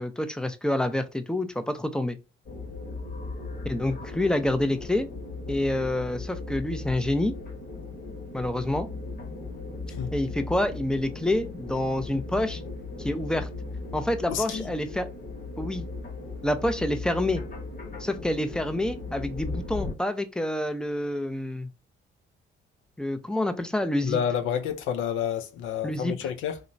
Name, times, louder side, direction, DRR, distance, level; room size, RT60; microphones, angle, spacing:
voice 1, 0.0-2.2 3.6-5.1 5.5-7.3 8.3-8.9 10.1-12.6 13.0-13.5 13.9-15.1 15.6-15.9 16.4-17.4 18.0-21.7 23.0-24.2 25.8-26.3, left 1 dB, 5° left, 0.4 m, -27 dB
sound 1, 2.5-19.9, left 3 dB, 45° left, 0.9 m, -37 dB
voice 2, 14.3-14.7 24.0-26.6, left 8 dB, 80° left, 0.4 m, -29 dB
2.8 x 2.1 x 2.5 m
cardioid pair, 90°, 20 cm